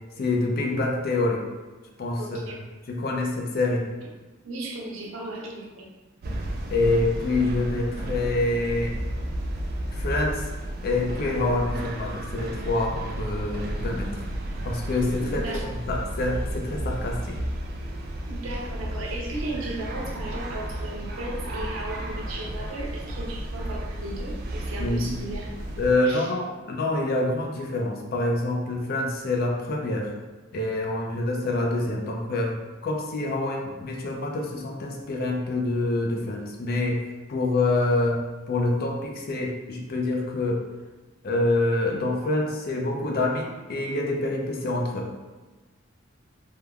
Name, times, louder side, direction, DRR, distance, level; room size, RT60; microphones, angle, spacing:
voice 1, 0.2-1.4 2.0-2.6 2.9-3.9 6.7-8.9 9.9-10.5 10.8-14.2 14.6-15.4 15.7-17.4 24.8-25.1 25.8-30.1 30.5-32.5 32.8-37.0 37.3-38.2 38.5-40.6 41.2-45.1, left 2 dB, 50° left, 0 dB, 0.4 m, -26 dB
voice 2, 2.2-2.6 4.4-5.8 15.2-15.7 18.3-25.5 26.0-26.3, right 1 dB, 85° right, -2 dB, 0.6 m, -36 dB
sound 1, 6.2-25.9, right 1 dB, 50° right, 0.3 m, -32 dB
3.3 x 2.1 x 2.3 m, 1.3 s
head